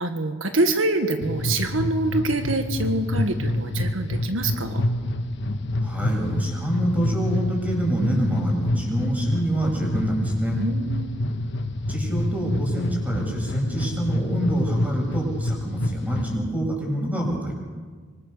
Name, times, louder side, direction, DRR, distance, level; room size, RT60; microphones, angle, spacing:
voice 1, 0.0-4.9 10.6-11.3, right 2 dB, 80° right, 6 dB, 1.7 m, -25 dB
sound 1, 1.2-16.3, left 1 dB, 60° left, 1.5 m, -27 dB
voice 2, 5.8-10.6 11.9-17.5, right 1 dB, 10° right, -1 dB, 7.2 m, -26 dB
25.0 x 25.0 x 6.9 m, 1.5 s
head